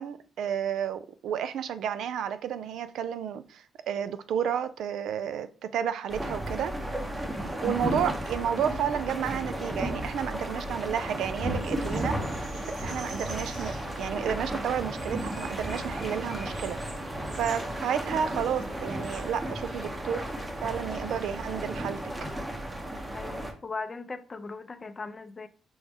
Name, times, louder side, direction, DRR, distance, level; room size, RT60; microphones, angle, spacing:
voice 1, 0.0-6.7 7.4-12.2 12.8-16.8 17.4-20.3 20.6-22.0, right 8 dB, 75° right, 0.4 m, -31 dB
sound 1, 6.1-23.5, right 1 dB, 15° right, 0.8 m, -34 dB
sound 2, 11.2-19.9, right 2 dB, 60° right, 2.3 m, -48 dB
voice 2, 23.1-25.5, left 4 dB, 30° left, 0.5 m, -39 dB
6.1 x 2.1 x 3.4 m
cardioid pair, 90°, 0 cm